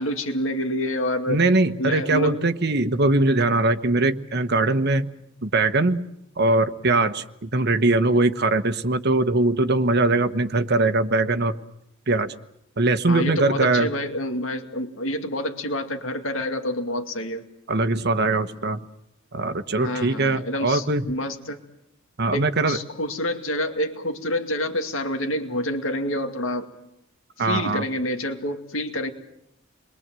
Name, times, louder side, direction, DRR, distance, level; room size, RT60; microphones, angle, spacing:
voice 1, 0.0-1.4 1.8-2.4 13.1-17.4 19.8-21.6 22.3-26.7 27.4-29.1, left 1 dB, 70° left, 6 dB, 2.3 m, -28 dB
voice 2, 1.3-5.1 5.4-6.0 6.4-11.5 12.1-12.3 12.8-13.9 17.7-18.8 19.3-21.1 22.2-22.8 27.4-27.8, right 2 dB, 55° right, 9 dB, 1.2 m, -21 dB
29.0 x 22.5 x 7.7 m, 0.80 s
head